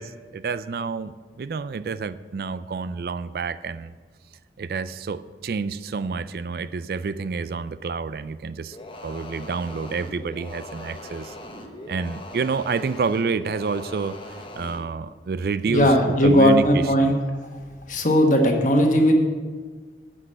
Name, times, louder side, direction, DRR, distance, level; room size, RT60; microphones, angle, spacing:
voice 1, 0.0-3.9 4.6-8.8 9.0-11.4 11.9-15.9 16.2-17.1, right 5 dB, 55° right, 14 dB, 0.3 m, -29 dB
sound 1, 8.7-14.9, left 1 dB, 30° left, 0.9 m, -40 dB
voice 2, 15.7-17.1 17.5-17.6 17.9-19.1, equal, 45° left, 3 dB, 1.4 m, -18 dB
9.9 x 6.2 x 7.7 m, 1.5 s
head